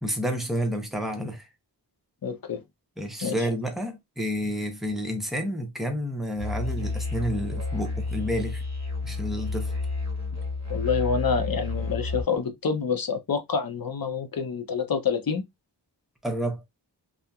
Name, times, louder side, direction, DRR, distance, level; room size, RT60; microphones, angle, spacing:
voice 1, 0.0-1.5 3.0-8.6 9.0-9.7 16.2-16.6, equal, ahead, 0.8 m, -30 dB
voice 2, 2.2-2.6 3.2-3.5 10.7-15.4, left 5 dB, 55° left, 0.7 m, -27 dB
Musical instrument, 6.4-12.2, left 3 dB, 40° right, 1.1 m, -30 dB
2.7 x 2.4 x 2.3 m
wide cardioid pair, 65°, 42 cm